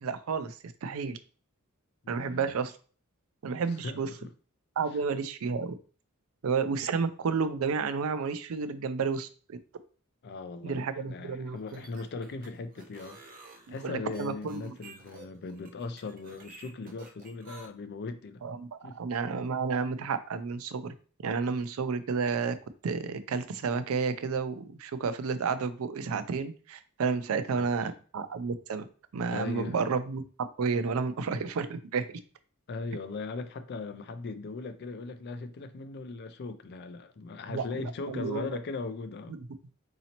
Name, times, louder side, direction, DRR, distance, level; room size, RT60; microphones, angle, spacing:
voice 1, 0.0-1.2 2.1-2.7 3.4-4.1 4.8-5.7 6.4-9.6 10.6-11.8 13.8-14.7 18.4-20.9 21.2-22.5 22.8-28.9 29.1-30.2 30.6-32.0 37.5-38.4 39.3-39.4, right 5 dB, 70° right, 0.4 m, -31 dB
voice 2, 2.2-2.5 3.8-4.3 10.2-13.2 13.5-18.4 18.8-19.0 27.3-27.7 29.3-29.8 32.7-39.4, left 3 dB, 50° left, 0.4 m, -39 dB
sound 1, 11.6-17.7, right 3 dB, 40° right, 0.7 m, -51 dB
4.0 x 2.8 x 2.8 m
head